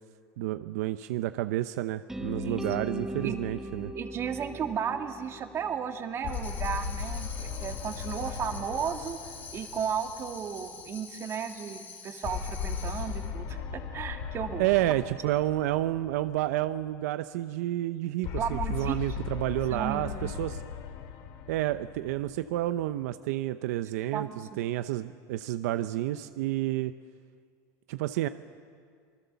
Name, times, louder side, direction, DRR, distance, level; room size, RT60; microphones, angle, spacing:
voice 1, 0.4-3.9 14.6-20.6 21.5-26.9 27.9-28.3, right 15 dB, 75° right, 12 dB, 0.7 m, -30 dB
sound 1, 2.1-6.2, equal, 5° right, 1.4 m, -38 dB
voice 2, 2.4-2.9 3.2-3.4 3.9-9.2 9.5-14.6 18.4-19.3 19.7-20.3 24.1-24.5, right 7 dB, 30° right, 6 dB, 1.9 m, -34 dB
sound 2, 6.2-10.8 12.2-16.6 18.2-22.8, left 6 dB, 50° left, 2.3 m, -37 dB
Tambourine, 6.3-13.4, left 5 dB, 20° left, 2.5 m, -46 dB
26.0 x 20.5 x 7.0 m, 2.1 s
supercardioid pair, 140°, 9 cm